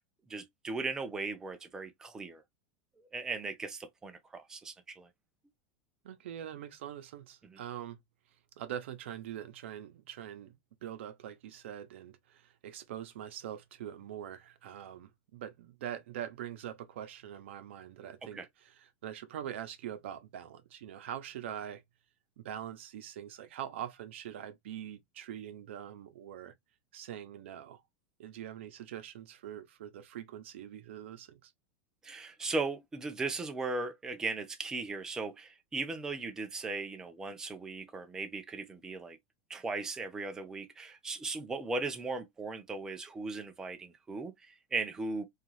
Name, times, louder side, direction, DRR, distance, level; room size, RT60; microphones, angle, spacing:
voice 1, 0.3-2.4 3.1-5.1 18.3-18.5 32.0-39.2 39.5-45.3, right 3 dB, 10° right, 0.4 m, -37 dB
voice 2, 6.0-8.0 8.6-10.5 10.8-21.8 22.4-26.5 26.9-27.8 28.2-31.5, right 10 dB, 90° right, 0.6 m, -43 dB
2.6 x 2.4 x 3.1 m
supercardioid pair, 160°, 6 cm